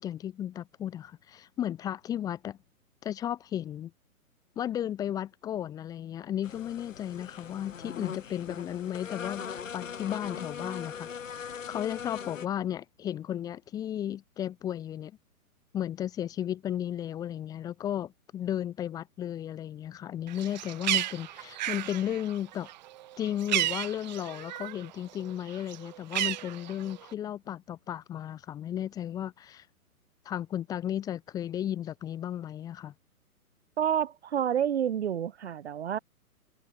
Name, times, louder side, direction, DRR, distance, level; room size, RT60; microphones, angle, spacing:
voice 1, 0.0-2.6 3.0-3.9 4.6-9.5 9.7-11.1 11.7-15.2 15.7-22.7 23.2-29.6 30.2-32.9, left 10 dB, 10° left, 1.1 m, -34 dB
sound 1, 6.4-12.5, left 7 dB, 60° left, 1.5 m, -40 dB
Bird, 20.3-24.9 25.2-27.1, right 14 dB, 30° right, 1.5 m, -33 dB
voice 2, 33.8-36.0, right 9 dB, 45° right, 1.6 m, -29 dB
figure-of-eight pair, 130°, 45 cm